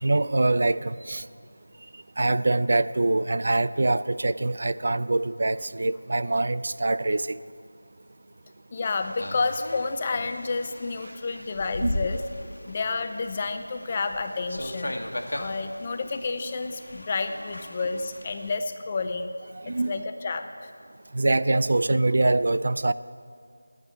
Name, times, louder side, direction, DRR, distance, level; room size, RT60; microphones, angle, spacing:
voice 1, 0.0-1.2 2.2-7.4 11.8-12.0 19.6-19.9 21.1-22.9, right 2 dB, 50° right, 15 dB, 0.4 m, -24 dB
voice 2, 8.7-12.2 12.7-14.9 15.3-19.3 19.7-20.7, left 4 dB, 25° left, 7 dB, 0.5 m, -30 dB
sound 1, 8.8-18.5, left 1 dB, 65° left, 1.2 m, -37 dB
10.5 x 8.8 x 9.4 m, 2.3 s
figure-of-eight pair, 170°, 0 cm